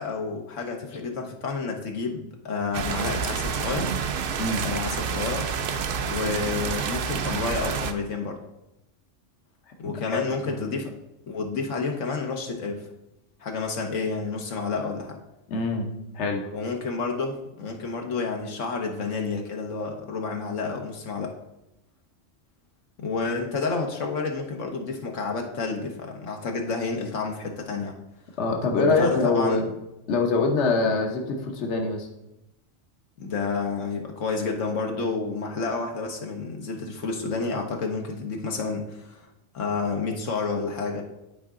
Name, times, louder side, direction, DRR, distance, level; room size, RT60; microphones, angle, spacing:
voice 1, 0.0-3.9 4.6-5.5 6.0-8.4 9.8-10.9 11.3-12.9 13.4-15.2 16.5-21.3 23.0-27.9 28.8-29.6 30.8-30.9 33.2-39.3 39.5-41.0, left 4 dB, 85° left, 2 dB, 1.4 m, -30 dB
sound 1, 2.7-7.9, right 6 dB, 55° right, 0.7 m, -28 dB
voice 2, 10.0-10.6 15.5-16.5 28.4-29.7 30.1-32.1, left 3 dB, 65° left, 2 dB, 1.3 m, -24 dB
11.0 x 4.7 x 3.7 m, 0.90 s
omnidirectional pair, 1.3 m